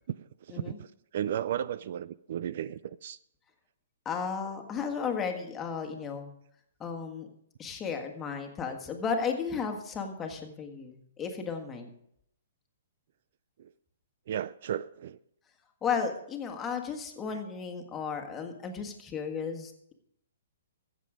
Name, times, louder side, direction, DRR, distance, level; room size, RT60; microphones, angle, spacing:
voice 1, 0.5-0.9 1.1-3.2 13.6-13.7 14.3-15.2, right 10 dB, 55° right, 0.4 m, -34 dB
voice 2, 4.0-6.3 6.8-7.3 7.6-11.9 15.8-19.9, left 6 dB, 15° left, 1.6 m, -34 dB
14.5 x 7.7 x 5.0 m
hypercardioid pair, 145°, 0 cm